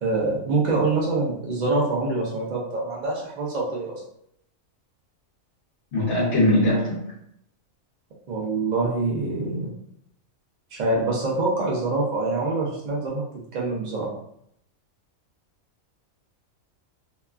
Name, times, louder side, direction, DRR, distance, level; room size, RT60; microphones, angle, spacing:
voice 1, 0.0-4.0 8.3-9.7 10.7-13.2 13.5-14.1, right 3 dB, 70° right, -4 dB, 0.4 m, -25 dB
voice 2, 5.9-7.0, left 1 dB, 60° left, -8 dB, 1.1 m, -20 dB
2.9 x 2.2 x 2.3 m, 0.72 s
omnidirectional pair, 1.4 m